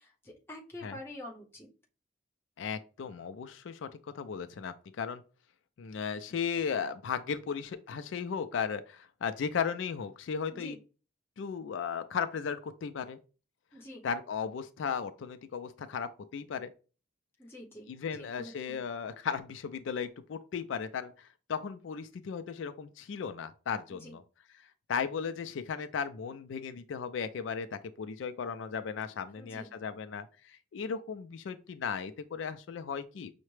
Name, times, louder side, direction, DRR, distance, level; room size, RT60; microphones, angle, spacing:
voice 1, 0.0-1.7 10.5-10.8 13.7-14.1 17.4-17.9 18.2-18.8 23.9-24.2 29.4-29.7, left 1 dB, 10° left, 0.8 m, -47 dB
voice 2, 2.6-3.9 4.1-5.2 5.8-10.8 11.4-13.2 14.0-16.7 17.9-24.2 24.6-33.3, left 6 dB, 80° left, 0.4 m, -36 dB
5.7 x 2.1 x 3.1 m
head